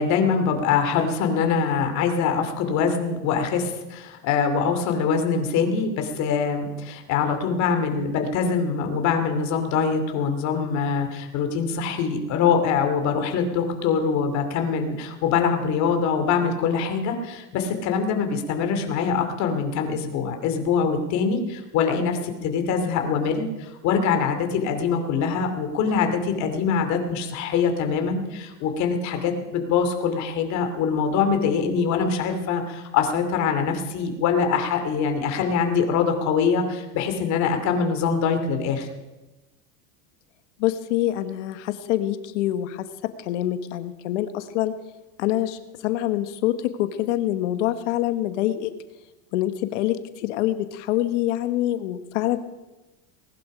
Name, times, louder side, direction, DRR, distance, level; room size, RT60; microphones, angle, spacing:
voice 1, 0.0-38.9, left 6 dB, 50° left, 5 dB, 2.7 m, -24 dB
voice 2, 40.6-44.7 45.2-48.7 49.3-52.4, left 13 dB, 85° left, 11 dB, 1.2 m, -25 dB
19.5 x 11.0 x 5.0 m, 1.1 s
supercardioid pair, 135°, 35 cm